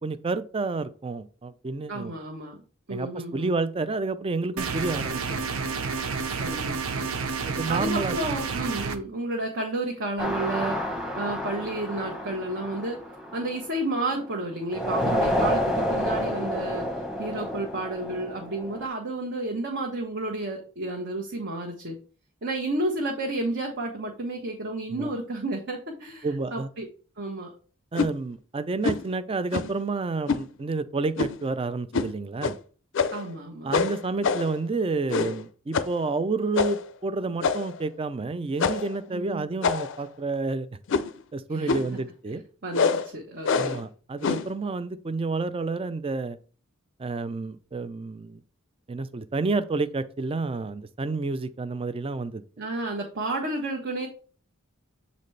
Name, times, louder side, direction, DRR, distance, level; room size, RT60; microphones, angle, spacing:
voice 1, 0.0-2.1 2.9-5.2 7.5-8.2 15.0-15.3 24.9-25.1 26.2-26.7 27.9-32.6 33.6-40.7 41.3-42.4 43.6-46.4 47.0-48.4 48.9-52.4, right 3 dB, 25° right, 0.4 m, -29 dB
voice 2, 1.9-2.6 2.9-3.6 6.4-7.1 7.7-10.8 11.2-13.0 13.3-16.9 17.2-22.0 22.4-26.9 27.2-27.5 33.1-33.7 39.1-39.4 41.5-41.8 42.6-43.8 52.6-54.1, right 2 dB, 55° right, 1.1 m, -31 dB
sound 1, 4.6-9.0, right 5 dB, 75° right, 0.7 m, -30 dB
sound 2, 10.2-14.2 14.7-18.9, equal, ahead, 1.0 m, -29 dB
sound 3, 27.9-28.1 28.8-29.1 29.5-29.8 30.3-30.5 31.2-31.5 31.9-32.1 32.4-32.6 32.9-33.3 33.7-34.6 35.1-35.4 35.7-36.0 36.5-36.9 37.4-37.8 38.6-38.9 39.6-40.1 40.9-41.2 41.7-42.0 42.7-43.1 43.4-43.8 44.2-44.5, left 5 dB, 60° left, 0.5 m, -26 dB
7.4 x 4.1 x 3.2 m
head